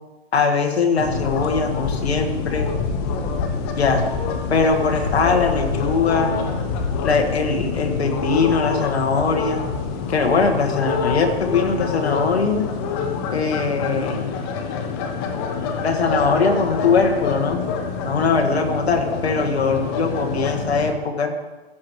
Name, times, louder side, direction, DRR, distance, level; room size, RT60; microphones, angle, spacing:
voice 1, 0.3-2.7 3.8-4.0 4.5-6.3 7.0-9.6 10.1-12.7 13.3-14.3 15.8-17.6 18.0-21.3, left 4 dB, 85° left, 4 dB, 1.7 m, -21 dB
sound 1, 1.0-20.9, left 5 dB, 25° left, 0.7 m, -26 dB
15.0 x 8.0 x 3.1 m, 1.1 s
hypercardioid pair, 150°, 31 cm